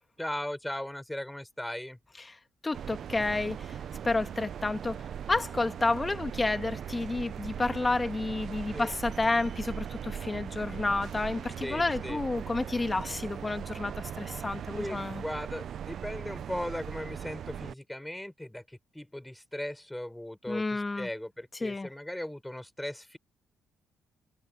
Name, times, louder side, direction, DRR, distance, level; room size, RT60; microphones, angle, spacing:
voice 1, 0.2-2.0 8.7-8.9 11.6-12.2 14.8-23.2, left 1 dB, 5° left, 5.8 m, -38 dB
voice 2, 2.6-3.8 4.0-15.2 20.5-21.1 21.6-21.9, left 3 dB, 20° left, 2.0 m, -30 dB
sound 1, 2.7-17.7, right 9 dB, 60° right, 0.7 m, -39 dB
cardioid pair, 90°, 0 cm